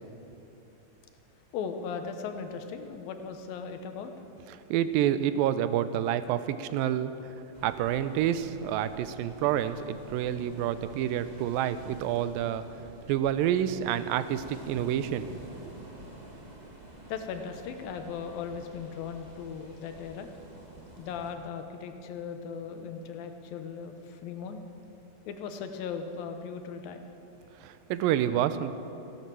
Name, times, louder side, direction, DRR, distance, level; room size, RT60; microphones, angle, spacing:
voice 1, 1.5-4.1 17.1-20.3 21.0-24.6 25.3-27.1, left 6 dB, 85° left, 7 dB, 2.8 m, -38 dB
voice 2, 4.7-7.3 7.6-12.7 13.1-15.3 27.6-28.7, right 10 dB, 85° right, 12 dB, 2.4 m, -28 dB
sound 1, 7.5-21.3, right 1 dB, 35° right, 0.6 m, -49 dB
15.5 x 11.0 x 7.5 m, 2.9 s
omnidirectional pair, 4.0 m